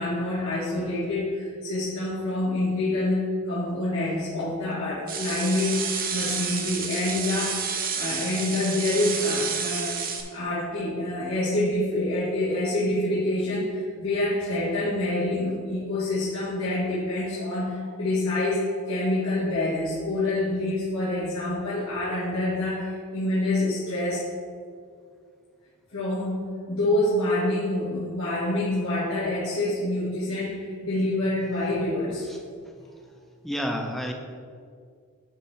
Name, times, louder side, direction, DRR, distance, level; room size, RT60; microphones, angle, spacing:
voice 1, 0.0-7.6 8.0-10.0 10.3-24.2 25.9-26.4 26.7-32.3, left 1 dB, 80° left, -10 dB, 1.8 m, -27 dB
sound 1, 5.1-10.2, right 6 dB, 40° right, 0.8 m, -30 dB
voice 2, 33.4-34.1, equal, ahead, 2 dB, 0.6 m, -29 dB
9.9 x 3.3 x 5.7 m, 2.2 s
head